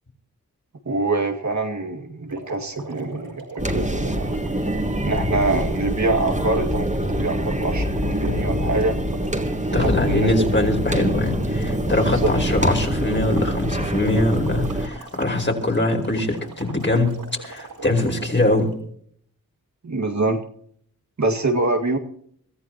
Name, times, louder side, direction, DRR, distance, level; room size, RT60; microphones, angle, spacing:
voice 1, 0.9-4.4 5.0-9.0 9.7-10.5 12.1-12.3 19.8-20.4 21.2-22.0, right 2 dB, 55° right, 2 dB, 2.1 m, -24 dB
sound 1, 2.3-18.7, right 3 dB, 80° right, 5.5 m, -39 dB
sound 2, 3.6-14.9, equal, 20° right, 2.8 m, -25 dB
voice 2, 9.7-18.7, left 1 dB, 30° left, 2 dB, 4.8 m, -22 dB
24.0 x 14.5 x 3.0 m, 0.63 s
cardioid pair, 50°, 35 cm